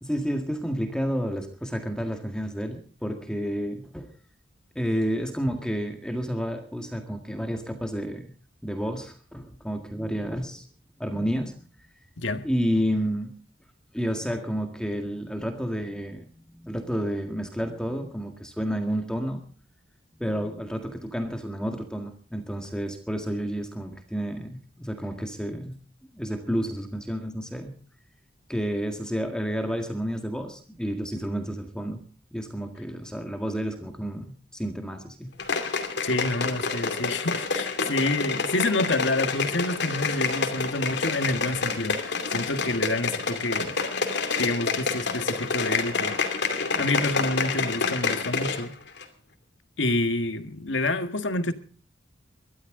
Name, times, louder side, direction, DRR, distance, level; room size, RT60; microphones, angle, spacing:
voice 1, 0.0-4.1 4.8-8.3 8.6-10.7 11.0-11.6 12.4-13.3 13.9-19.4 20.2-25.8 26.1-27.7 28.5-32.0 32.3-35.3, equal, 5° left, 1.8 m, -30 dB
voice 2, 12.2-12.5 36.0-43.7 44.4-46.2 46.8-48.8 49.8-51.5, left 2 dB, 90° left, 1.7 m, -28 dB
sound 1, 35.4-48.7 49.0-49.1, left 4 dB, 65° left, 2.6 m, -28 dB
22.5 x 13.0 x 3.8 m
head